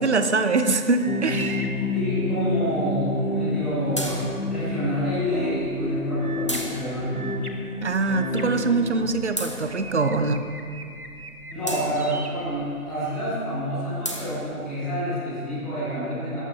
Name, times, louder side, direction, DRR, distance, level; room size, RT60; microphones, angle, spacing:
voice 1, 0.0-1.7 7.8-10.4, right 3 dB, 50° right, 9 dB, 0.9 m, -23 dB
sound 1, 1.0-2.7 6.2-9.4 9.8-13.2, right 2 dB, 70° right, 1.7 m, -41 dB
sound 2, 1.1-9.0, left 2 dB, 55° left, 2.2 m, -29 dB
sound 3, 1.2-14.8, right 1 dB, 20° left, 0.7 m, -39 dB
voice 2, 1.9-7.2 11.5-16.4, equal, ahead, -15 dB, 1.2 m, -28 dB
20.0 x 14.5 x 3.3 m, 2.4 s
figure-of-eight pair, 155°, 45 cm